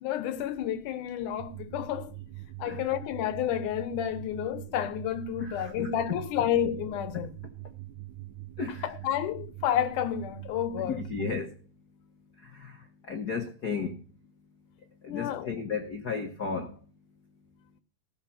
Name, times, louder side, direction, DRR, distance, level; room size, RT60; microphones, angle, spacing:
voice 1, 0.0-2.1 2.6-7.3 8.8-11.0 15.1-15.5, left 10 dB, 90° left, 2.6 m, -30 dB
sound 1, 1.4-11.4, right 17 dB, 80° right, 2.5 m, -43 dB
voice 2, 5.4-6.2 8.6-8.9 10.8-11.5 12.6-12.7 13.1-14.0 15.0-16.7, left 5 dB, 65° left, 1.0 m, -34 dB
15.5 x 6.8 x 7.4 m
omnidirectional pair, 3.5 m